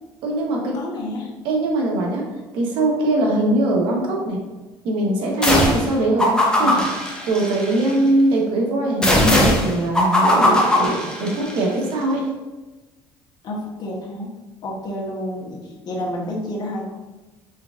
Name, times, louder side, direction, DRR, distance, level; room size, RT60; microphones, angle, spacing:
voice 1, 0.2-0.7 1.4-2.2 2.5-4.4 4.8-6.7 7.3-12.2, right 2 dB, 75° right, -1 dB, 1.1 m, -21 dB
voice 2, 0.7-1.3 6.6-6.9 9.2-9.5 11.2-11.4 13.4-14.3 14.6-16.9, left 1 dB, 50° left, -2 dB, 1.0 m, -29 dB
sound 1, 5.4-5.9 6.2-7.9 9.0-11.6, left 1 dB, 10° left, 0.9 m, -19 dB
4.5 x 3.5 x 2.5 m, 1.2 s
cardioid pair, 105°, 9 cm